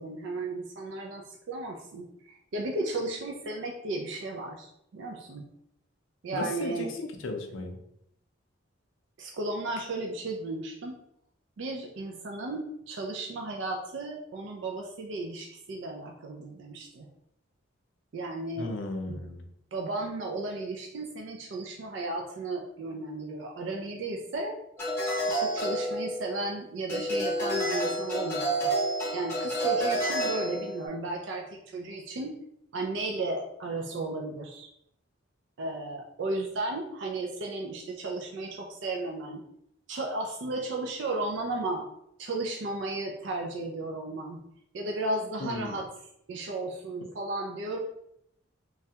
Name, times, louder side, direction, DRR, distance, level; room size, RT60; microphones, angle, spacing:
voice 1, 0.0-5.5 6.2-6.9 9.2-11.0 11.6-17.1 18.1-18.7 19.1-19.2 19.7-24.6 25.3-28.7 29.1-32.3 32.7-34.7 35.6-39.4 39.9-41.9 42.2-44.4 44.7-45.9 46.3-47.8, right 2 dB, 65° right, 1 dB, 0.4 m, -34 dB
voice 2, 6.3-7.8 18.6-19.5 45.4-45.8, left 2 dB, 75° left, 4 dB, 0.5 m, -35 dB
sound 1, 24.8-26.5 26.9-30.9, right 1 dB, 10° left, 0.7 m, -29 dB
3.2 x 2.3 x 2.7 m, 0.76 s
head